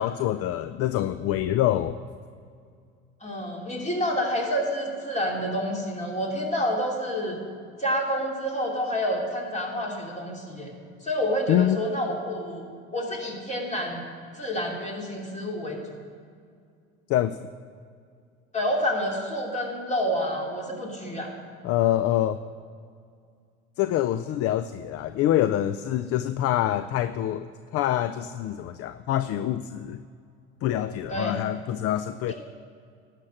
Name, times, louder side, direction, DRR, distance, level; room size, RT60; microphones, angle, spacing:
voice 1, 0.0-2.0 11.5-11.8 17.1-17.4 21.6-22.4 23.8-30.0 30.6-32.3, left 12 dB, 45° left, 13 dB, 0.4 m, -25 dB
voice 2, 3.2-7.4 7.8-10.7 11.0-12.6 12.9-14.0 14.3-15.8 18.5-21.3 31.1-31.4 32.3-32.4, equal, 20° left, -1 dB, 2.8 m, -28 dB
11.5 x 5.9 x 7.7 m, 2.2 s
hypercardioid pair, 70°, 34 cm